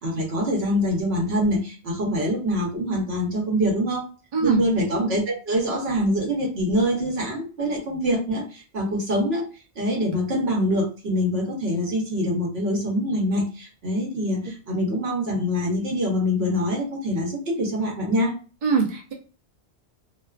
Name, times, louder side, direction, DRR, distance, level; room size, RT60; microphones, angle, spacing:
voice 1, 0.0-4.1 4.4-9.4 9.8-18.4, equal, 70° right, -1 dB, 1.0 m, -24 dB
voice 2, 18.6-19.1, right 5 dB, 45° right, 0 dB, 0.6 m, -22 dB
2.5 x 2.3 x 2.3 m, 0.35 s
omnidirectional pair, 1.1 m